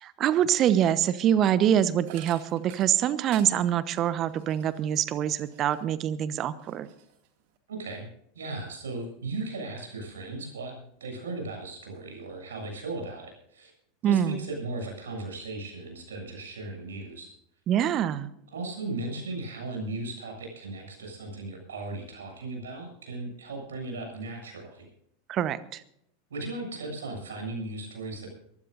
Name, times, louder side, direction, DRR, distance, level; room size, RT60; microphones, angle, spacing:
voice 1, 0.0-6.9 14.0-14.4 17.7-18.3 25.3-25.8, right 10 dB, 40° right, 15 dB, 1.1 m, -25 dB
sound 1, 2.0-6.0 6.4-7.6, right 10 dB, 55° right, 2.3 m, -51 dB
voice 2, 7.7-8.1 8.3-13.7 14.0-17.3 18.5-24.9 26.3-28.3, right 2 dB, 75° right, 2 dB, 7.4 m, -37 dB
23.0 x 15.5 x 2.6 m, 0.73 s
figure-of-eight pair, 85°, 0 cm